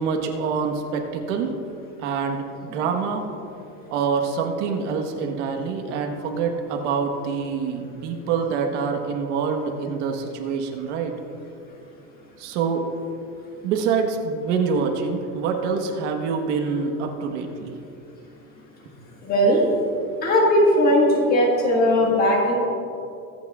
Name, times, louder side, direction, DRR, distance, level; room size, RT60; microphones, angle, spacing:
voice 1, 0.0-1.5 2.0-3.2 3.9-11.1 12.4-12.9 13.6-17.7, right 5 dB, 60° right, 3 dB, 1.3 m, -26 dB
voice 2, 19.2-19.7 20.2-22.5, equal, 25° left, -1 dB, 1.5 m, -18 dB
23.0 x 8.6 x 2.4 m, 2.7 s
cardioid pair, 180°, 39 cm